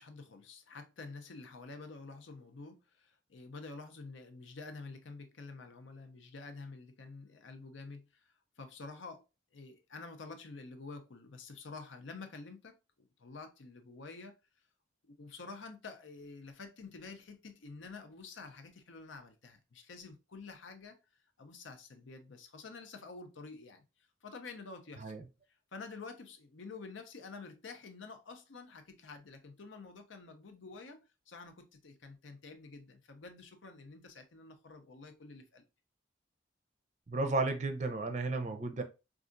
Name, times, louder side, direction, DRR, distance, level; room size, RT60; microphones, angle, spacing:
voice 1, 0.0-9.2 9.5-14.3 15.1-21.0 21.4-23.8 24.2-25.2 25.7-35.6, left 4 dB, 75° left, 0.7 m, -49 dB
voice 2, 37.1-38.8, right 3 dB, 35° right, 0.5 m, -33 dB
4.6 x 2.4 x 2.5 m
head